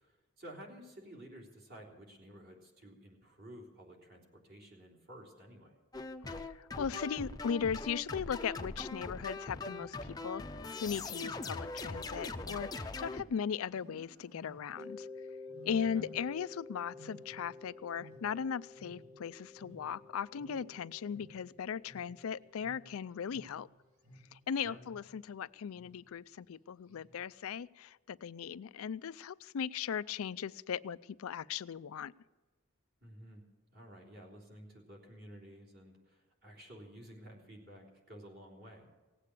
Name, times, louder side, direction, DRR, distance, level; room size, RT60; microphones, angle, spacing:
voice 1, 0.0-5.8 15.9-16.1 24.5-24.8 33.0-33.4 33.7-38.9, equal, 45° right, -1 dB, 3.4 m, -53 dB
sound 1, 5.9-13.2, left 3 dB, 20° left, 0.6 m, -41 dB
voice 2, 6.3-10.4 10.8-15.1 15.6-23.7 24.3-32.1, left 7 dB, 85° left, 18 dB, 0.4 m, -38 dB
Wild animals, 8.6-10.3 11.3-13.2 13.7-14.9 15.5-16.5 16.8-19.3 19.6-24.5 24.8-25.3 25.7-26.2 26.9-27.3, right 1 dB, 85° right, 2.9 m, -57 dB
Mallet percussion, 14.8-23.4, left 3 dB, 15° right, 1.1 m, -51 dB
18.0 x 8.3 x 8.4 m, 1.3 s
head